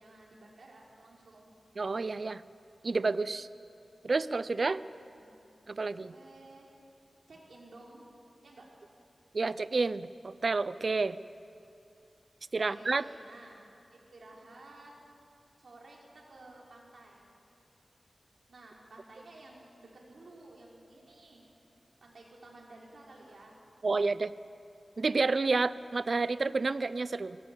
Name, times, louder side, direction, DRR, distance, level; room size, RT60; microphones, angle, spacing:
voice 1, 0.0-1.5 5.2-5.4 5.8-6.7 7.3-8.1 8.4-8.7 12.6-13.6 13.9-14.9 15.6-17.3 18.5-21.4 22.0-23.6, right 2 dB, 70° right, -3 dB, 4.5 m, -53 dB
voice 2, 1.8-2.4 2.8-3.5 4.0-4.8 5.7-6.1 9.3-11.2 12.5-13.1 23.8-24.3 25.0-27.4, right 3 dB, 50° right, 16 dB, 0.5 m, -29 dB
19.0 x 18.5 x 8.3 m, 2.6 s
wide cardioid pair, 115°, 0 cm